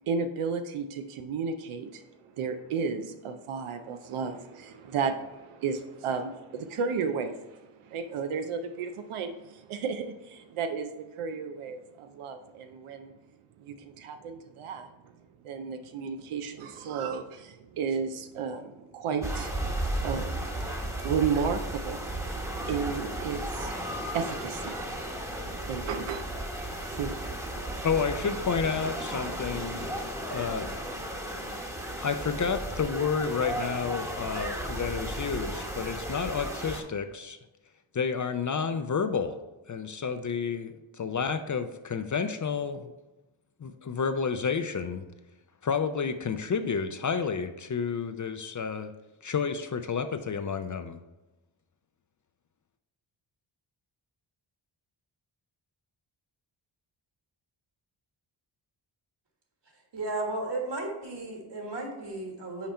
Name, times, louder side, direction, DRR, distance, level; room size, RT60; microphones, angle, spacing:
voice 1, 0.1-2.0 2.4-13.1 13.6-14.9 15.4-22.1 22.7-23.7 24.1-24.8 25.7-26.2 26.9-27.1, right 5 dB, 90° right, 7 dB, 0.6 m, -33 dB
sound 1, 19.2-36.8, right 1 dB, 5° right, 1.0 m, -34 dB
voice 2, 27.8-30.7 31.0-31.1 32.0-37.4 37.9-39.4 39.7-42.9 43.6-45.0 45.6-48.9 49.2-51.0, left 6 dB, 40° left, 9 dB, 0.5 m, -30 dB
voice 3, 59.9-62.7, right 2 dB, 55° right, 1 dB, 1.7 m, -34 dB
5.8 x 4.3 x 4.3 m, 1.1 s
cardioid pair, 55°, 49 cm